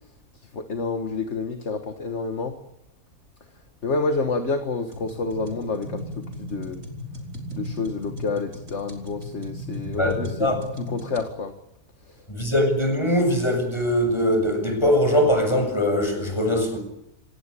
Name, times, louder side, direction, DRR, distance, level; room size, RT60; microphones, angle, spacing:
voice 1, 0.5-2.5 3.8-6.8 7.5-11.5, left 4 dB, 50° left, 6 dB, 1.9 m, -29 dB
sound 1, 4.9-11.3, left 1 dB, 60° right, 4.2 m, -36 dB
voice 2, 10.0-10.6 12.3-16.8, equal, 20° left, 5 dB, 7.1 m, -22 dB
27.0 x 18.5 x 10.0 m, 0.86 s
omnidirectional pair, 1.6 m